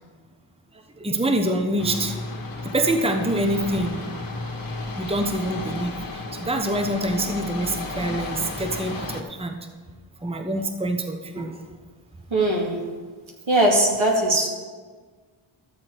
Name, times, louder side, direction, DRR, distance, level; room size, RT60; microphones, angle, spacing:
voice 1, 1.0-2.2 2.6-4.0 5.0-9.6 10.2-11.7, right 1 dB, 10° right, 4 dB, 1.0 m, -26 dB
sound 1, 1.8-9.2, left 3 dB, 45° left, 1.5 m, -33 dB
voice 2, 12.3-12.8 13.5-14.5, right 1 dB, 70° right, -2 dB, 2.4 m, -20 dB
13.0 x 7.3 x 4.6 m, 1.5 s
cardioid pair, 40°, 50 cm